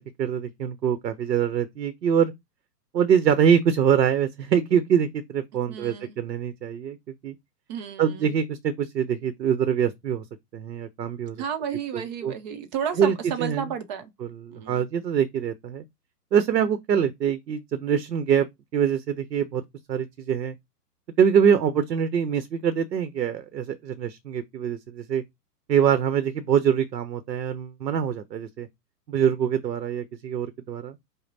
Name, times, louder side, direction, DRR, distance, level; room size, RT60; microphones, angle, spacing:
voice 1, 0.2-2.3 2.9-7.0 7.2-7.3 8.0-10.2 10.5-11.4 11.9-12.3 13.0-13.7 14.2-15.8 16.3-18.5 18.7-19.6 19.9-20.6 21.2-25.2 25.7-28.7 29.1-31.0, right 8 dB, 85° right, 0.8 m, -24 dB
voice 2, 5.7-6.1 7.7-8.3 11.4-14.1 14.5-14.9, right 8 dB, 30° right, 0.6 m, -32 dB
5.3 x 2.1 x 4.0 m
hypercardioid pair, 130°, 49 cm